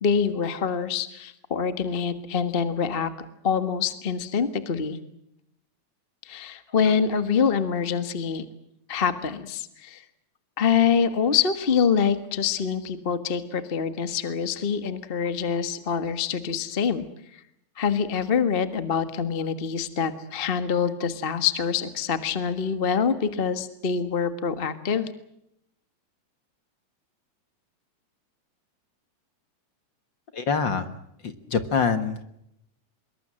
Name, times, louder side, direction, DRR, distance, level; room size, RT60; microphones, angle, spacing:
voice 1, 0.0-3.1 3.4-5.0 6.2-8.5 8.9-10.0 10.6-17.1 17.3-17.4 17.8-25.1, left 6 dB, 30° left, 11 dB, 1.1 m, -25 dB
voice 2, 30.3-30.9 31.2-32.3, left 5 dB, 45° left, 11 dB, 1.8 m, -25 dB
25.5 x 22.5 x 7.7 m, 0.77 s
omnidirectional pair, 3.4 m